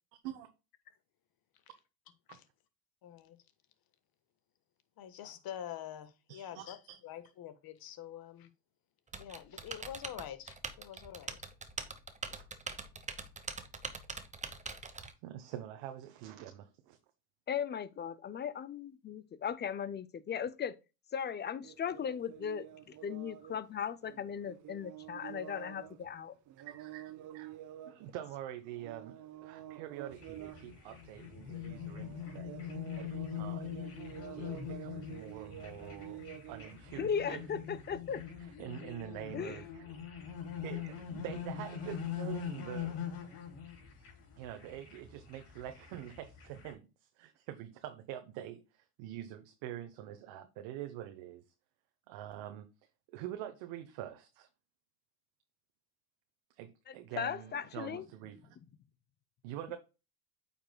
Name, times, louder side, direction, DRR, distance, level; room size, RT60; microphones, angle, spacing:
voice 1, 3.0-3.4 5.0-6.8 7.0-8.5 9.2-11.4, left 11 dB, 45° left, 1.3 m, -46 dB
voice 2, 6.3-7.0 12.3-12.5 15.2-17.0 26.7-27.6 27.8-29.2 29.4-33.8 34.4-36.2 36.5-37.5 38.6-40.1 40.6-43.0 44.4-51.4 52.1-52.7 53.1-54.5 56.5-58.6 59.4-59.8, right 12 dB, 65° right, 1.1 m, -45 dB
Typing, 9.1-15.1, right 4 dB, 15° right, 0.9 m, -43 dB
voice 3, 17.5-20.8 21.1-26.3 36.9-38.2 39.3-39.6 56.9-58.1, left 7 dB, 25° left, 0.4 m, -37 dB
sound 1, 21.6-26.2 26.5-36.9, right 12 dB, 40° right, 0.7 m, -49 dB
sound 2, 30.1-46.7, left 8 dB, 70° left, 3.8 m, -43 dB
8.7 x 5.7 x 2.2 m
supercardioid pair, 95°, 49 cm